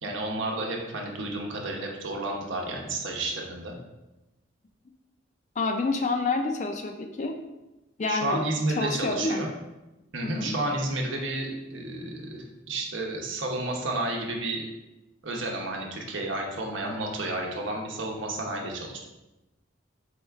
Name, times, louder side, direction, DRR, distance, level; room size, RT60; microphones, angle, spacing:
voice 1, 0.0-3.7 8.1-9.5 10.1-14.7 15.2-19.0, right 2 dB, 70° right, 1 dB, 0.8 m, -31 dB
voice 2, 5.6-7.3 8.0-8.4 8.7-9.4 10.2-10.5 16.8-16.9, left 3 dB, 35° left, 4 dB, 0.3 m, -28 dB
4.3 x 2.4 x 4.4 m, 1.0 s
head